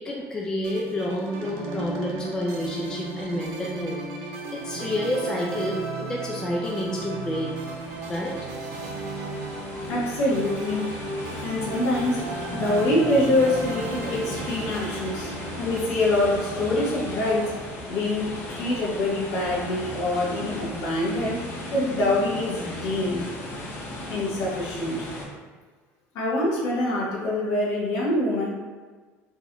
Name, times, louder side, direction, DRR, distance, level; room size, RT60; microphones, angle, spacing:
voice 1, 0.0-7.5 8.1-8.4, left 1 dB, 10° left, -2 dB, 0.3 m, -29 dB
sound 1, 0.6-18.0, right 2 dB, 70° right, 0.7 m, -35 dB
sound 2, 6.2-25.2, left 1 dB, 40° left, 0.7 m, -37 dB
voice 2, 9.9-10.9 11.4-15.3 15.6-17.5 17.9-23.2 24.1-25.1 26.1-28.5, left 1 dB, 60° left, -5 dB, 1.0 m, -25 dB
3.8 x 2.5 x 2.9 m, 1.4 s
cardioid pair, 170°, 6 cm